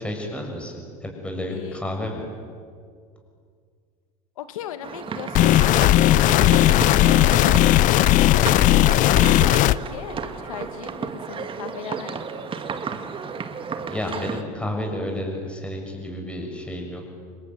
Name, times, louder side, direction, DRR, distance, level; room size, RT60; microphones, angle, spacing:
voice 1, 0.0-2.2 13.9-17.0, left 1 dB, 5° left, 1 dB, 6.8 m, -31 dB
voice 2, 1.5-1.8 4.4-6.5 9.4-12.4, left 10 dB, 85° left, 10 dB, 2.2 m, -38 dB
sound 1, 4.8-14.4, right 6 dB, 30° right, 2.1 m, -33 dB
sound 2, 5.4-9.8, left 15 dB, 50° left, 0.7 m, -16 dB
27.0 x 21.5 x 9.4 m, 2.2 s
supercardioid pair, 105°, 17 cm